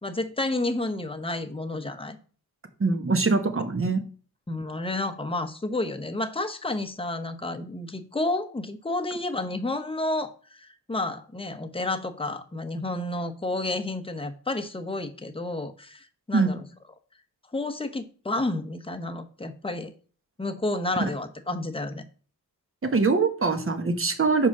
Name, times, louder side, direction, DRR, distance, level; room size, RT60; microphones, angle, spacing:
voice 1, 0.0-2.2 4.5-16.6 17.5-19.9 20.4-22.1, left 2 dB, 15° left, 8 dB, 0.9 m, -30 dB
voice 2, 2.8-4.0 16.3-16.5 21.0-21.1 22.8-24.5, right 4 dB, 35° right, 7 dB, 1.2 m, -23 dB
5.1 x 4.8 x 6.0 m, 0.41 s
cardioid pair, 80°, 37 cm